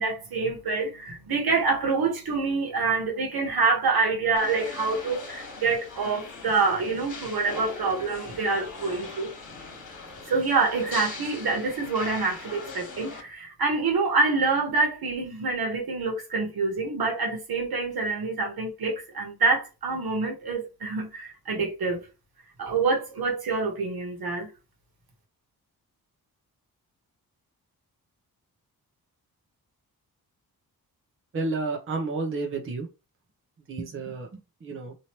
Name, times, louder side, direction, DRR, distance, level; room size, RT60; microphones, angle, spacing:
voice 1, 0.0-9.5 10.3-22.1 22.6-24.5, right 4 dB, 75° right, 1.2 m, -26 dB
sound 1, 4.4-13.2, left 4 dB, 55° left, 1.3 m, -40 dB
voice 2, 31.3-32.9 33.7-35.0, right 3 dB, 35° right, 0.7 m, -31 dB
3.0 x 2.7 x 2.9 m
wide cardioid pair, 145°, 37 cm